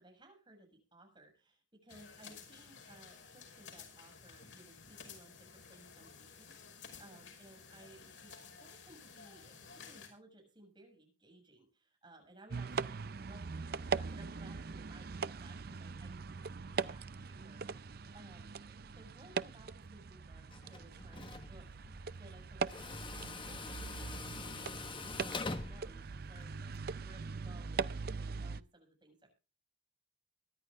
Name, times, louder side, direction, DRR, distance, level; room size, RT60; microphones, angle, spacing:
voice 1, 0.0-29.4, right 1 dB, 25° right, 3 dB, 7.3 m, -60 dB
sound 1, 1.9-10.1, left 6 dB, 85° left, 5.5 m, -54 dB
sound 2, 12.5-28.6, right 5 dB, 55° right, 0.5 m, -41 dB
Tools, 20.5-26.8, left 3 dB, 30° left, 1.2 m, -45 dB
23.5 x 11.0 x 2.5 m, 0.31 s
head